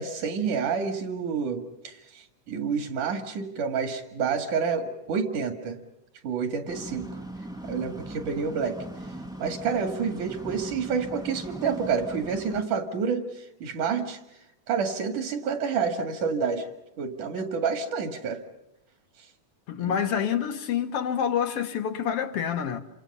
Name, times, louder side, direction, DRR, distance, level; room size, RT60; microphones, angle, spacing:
voice 1, 0.0-5.8 6.2-7.1 7.6-8.8 9.4-13.2 13.6-14.2 14.7-16.7 17.0-18.4 19.8-20.1, right 6 dB, 70° right, 3.4 m, -29 dB
sound 1, 6.7-12.6, right 1 dB, 5° right, 0.4 m, -39 dB
voice 2, 19.7-22.8, left 8 dB, 55° left, 2.0 m, -27 dB
28.0 x 27.0 x 5.5 m
omnidirectional pair, 3.7 m